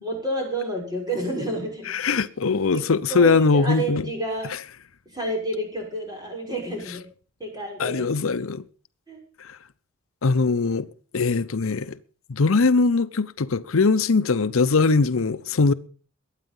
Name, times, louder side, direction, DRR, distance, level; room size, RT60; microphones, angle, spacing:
voice 1, 0.0-2.2 2.7-2.8 3.1-4.5 5.1-7.1 7.4-8.1 9.1-9.2, right 1 dB, 20° right, 6.2 m, -30 dB
voice 2, 1.9-4.0 7.8-8.7 9.4-9.6 10.2-10.9 11.1-12.0 12.3-15.7, left 4 dB, 75° left, 0.7 m, -21 dB
21.5 x 9.1 x 5.5 m
head